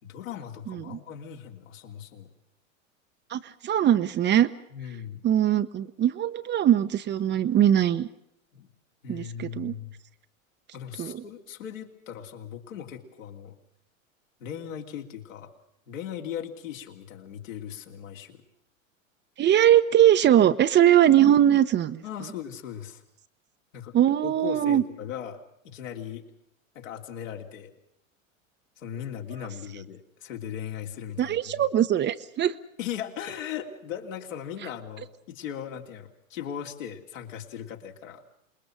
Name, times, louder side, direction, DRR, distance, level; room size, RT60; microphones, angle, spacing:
voice 1, 0.0-2.3 4.7-5.2 8.5-8.7 9.0-9.9 10.7-13.5 14.4-15.5 15.9-18.4 22.0-23.0 23.7-24.0 24.2-25.4 25.6-26.2 26.7-27.7 28.8-31.6 32.8-38.2, left 9 dB, 70° left, 2 dB, 3.1 m, -38 dB
voice 2, 0.7-1.0 3.3-4.5 5.2-8.1 9.1-9.7 11.0-11.2 19.4-22.0 23.9-24.8 31.2-32.5, right 11 dB, 25° right, 11 dB, 0.9 m, -21 dB
27.0 x 21.0 x 6.3 m, 0.79 s
hypercardioid pair, 90°, 40 cm